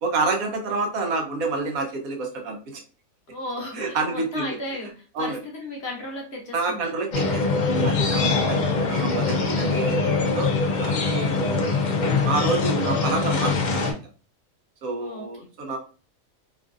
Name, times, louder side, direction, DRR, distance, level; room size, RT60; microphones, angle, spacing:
voice 1, 0.0-2.8 3.7-4.6 5.1-5.4 6.5-11.6 12.2-14.0 14.8-15.8, right 3 dB, 80° right, 2 dB, 1.2 m, -28 dB
voice 2, 3.3-6.9 8.2-8.3 15.0-15.3, left 1 dB, 55° left, -1 dB, 1.0 m, -35 dB
sound 1, 7.1-13.9, left 4 dB, 75° left, 0.4 m, -23 dB
3.0 x 2.4 x 2.4 m, 0.36 s
omnidirectional pair, 1.4 m